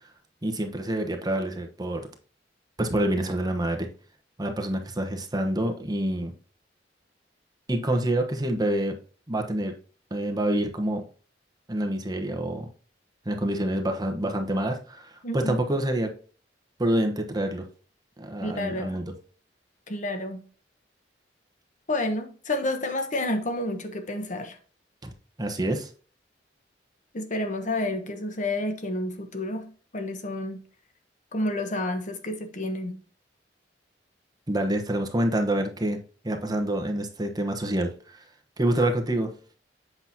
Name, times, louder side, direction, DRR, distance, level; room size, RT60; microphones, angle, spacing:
voice 1, 0.4-2.1 2.8-3.9 4.4-6.3 7.7-9.0 9.3-9.7 10.1-11.0 11.7-12.7 13.3-16.1 16.8-17.7 18.2-19.0 25.4-25.9 34.5-37.9 38.6-39.3, right 1 dB, 20° right, 1.0 m, -27 dB
voice 2, 15.2-15.6 18.4-19.0 19.9-20.4 21.9-24.6 27.1-30.6 31.3-33.0, left 1 dB, 45° left, 1.1 m, -30 dB
8.0 x 6.0 x 2.8 m
head